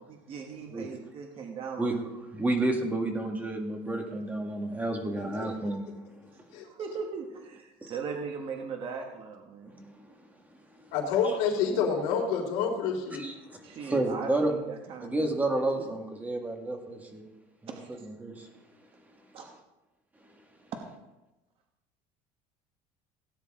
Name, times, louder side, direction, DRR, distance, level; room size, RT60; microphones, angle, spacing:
voice 1, 0.0-2.1 4.1-4.5 6.6-9.7 13.6-15.4 17.7-18.1 19.3-19.5, right 5 dB, 40° right, 3 dB, 1.4 m, -39 dB
voice 2, 2.3-5.9 7.8-7.9 9.7-10.0 13.2-14.5 15.0-17.2 17.6-18.5, right 2 dB, 10° right, 3 dB, 1.8 m, -31 dB
voice 3, 10.9-13.3, left 6 dB, 80° left, 1 dB, 3.6 m, -28 dB
17.5 x 9.8 x 3.7 m, 1.0 s
cardioid pair, 160°, 15 cm